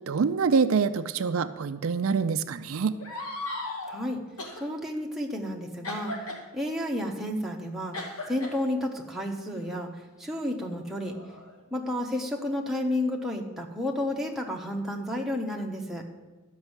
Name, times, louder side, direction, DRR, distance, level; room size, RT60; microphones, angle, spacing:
voice 1, 0.1-3.0, right 5 dB, 70° right, 11 dB, 0.4 m, -25 dB
sound 1, 3.0-4.0 4.4-4.6 5.8-6.4 7.9-8.5 9.5-9.7 10.6-11.8, left 2 dB, 90° left, 2.1 m, -37 dB
voice 2, 3.9-4.2 4.6-6.1 6.5-8.0 8.3-11.1 11.7-16.0, left 1 dB, ahead, -1 dB, 1.0 m, -31 dB
12.0 x 5.4 x 8.0 m, 1.3 s
head